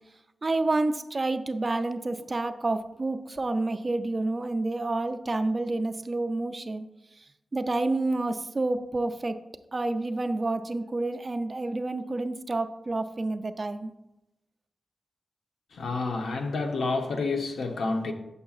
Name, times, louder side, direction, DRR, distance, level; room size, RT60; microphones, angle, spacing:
voice 1, 0.4-6.8 7.5-9.4 9.7-13.9, right 2 dB, 35° right, 0.4 m, -29 dB
voice 2, 15.7-18.1, left 3 dB, 80° left, 0.8 m, -29 dB
8.5 x 6.7 x 2.4 m
cardioid pair, 70°, 0 cm